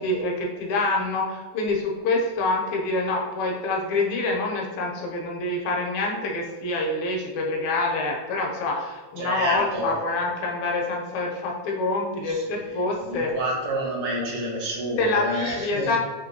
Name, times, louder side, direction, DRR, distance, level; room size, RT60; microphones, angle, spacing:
voice 1, 0.0-13.3 15.0-16.0, left 2 dB, 75° left, -1 dB, 2.0 m, -26 dB
voice 2, 9.2-10.0 12.2-12.3 12.6-16.0, right 1 dB, 60° right, -4 dB, 1.3 m, -29 dB
5.8 x 2.7 x 2.7 m, 1.4 s
omnidirectional pair, 3.5 m